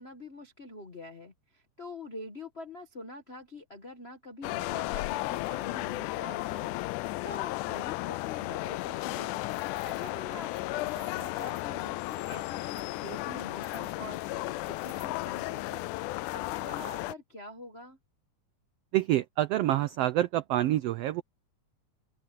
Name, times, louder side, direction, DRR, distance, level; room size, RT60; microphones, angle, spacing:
voice 1, 0.0-9.4 9.8-18.0, left 2 dB, 45° left, 0.8 m, -45 dB
sound 1, 4.4-17.1, left 19 dB, 85° left, 2.1 m, -34 dB
sound 2, 8.9-15.3, right 5 dB, 45° right, 3.3 m, -58 dB
voice 2, 18.9-21.2, right 14 dB, 85° right, 1.3 m, -27 dB
open air
omnidirectional pair, 3.5 m